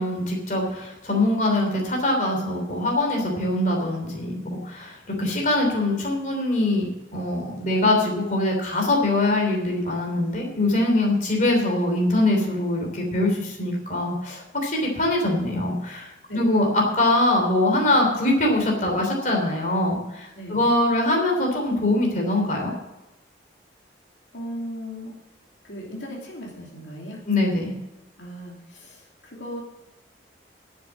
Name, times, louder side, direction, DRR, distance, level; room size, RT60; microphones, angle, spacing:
voice 1, 0.0-22.7 27.3-27.8, left 1 dB, 45° left, 0 dB, 3.2 m, -23 dB
voice 2, 24.3-25.1 25.6-27.2 28.2-29.6, equal, 80° left, -2 dB, 3.0 m, -37 dB
11.5 x 7.4 x 7.5 m, 0.98 s
head